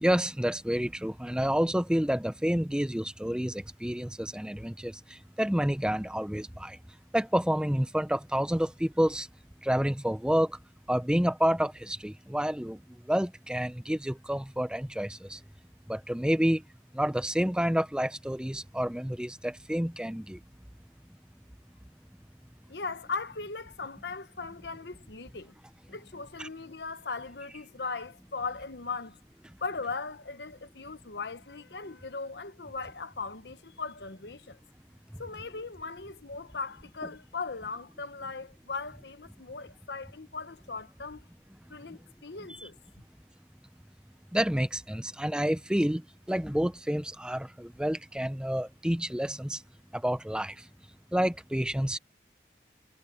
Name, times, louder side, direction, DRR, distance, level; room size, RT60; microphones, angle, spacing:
voice 1, 0.0-6.8 7.1-9.3 9.6-10.6 10.9-12.8 13.1-15.4 15.9-16.6 16.9-20.4 26.4-26.5 44.3-46.0 46.3-49.6 49.9-50.5 51.1-52.0, equal, 5° right, 0.6 m, -29 dB
voice 2, 22.7-25.5 25.9-29.2 29.6-34.6 35.2-41.3 41.7-42.8, left 4 dB, 75° left, 1.0 m, -38 dB
head